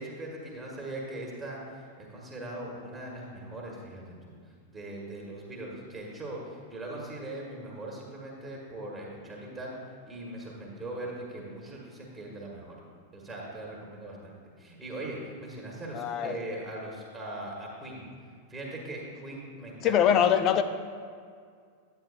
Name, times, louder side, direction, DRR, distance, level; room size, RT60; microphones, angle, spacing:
voice 1, 0.0-4.3 4.7-9.7 10.1-12.8 13.1-18.1 18.5-20.0, right 1 dB, 15° right, -2 dB, 1.4 m, -40 dB
voice 2, 15.9-16.4 19.8-20.6, left 9 dB, 35° left, 10 dB, 0.4 m, -23 dB
9.2 x 8.4 x 2.5 m, 2.1 s
figure-of-eight pair, 90°, 0 cm